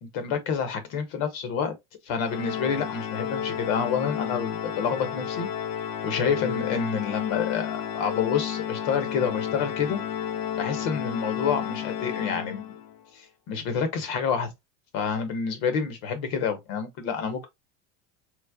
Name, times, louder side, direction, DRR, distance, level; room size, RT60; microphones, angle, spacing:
voice 1, 0.0-1.8 2.0-5.5 6.0-10.0 10.6-12.7 13.1-14.5 14.9-17.5, left 6 dB, 60° left, 1.2 m, -28 dB
Organ, 2.3-13.0, left 9 dB, 45° left, 0.6 m, -32 dB
3.2 x 2.0 x 3.6 m
supercardioid pair, 120°, 39 cm